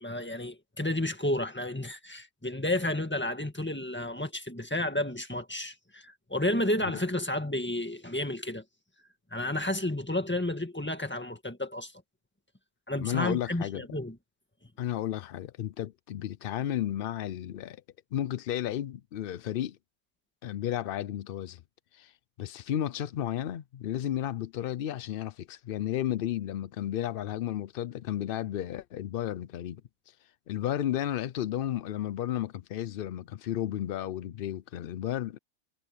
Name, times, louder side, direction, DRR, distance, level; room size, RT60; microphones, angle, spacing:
voice 1, 0.0-8.6 9.3-11.9 12.9-14.2, left 1 dB, 10° left, 1.7 m, -31 dB
voice 2, 13.0-13.8 14.8-17.8 18.1-19.8 20.4-21.6 21.9-22.1 22.4-29.8 30.5-35.4, left 11 dB, 75° left, 0.5 m, -33 dB
omnidirectional pair, 1.5 m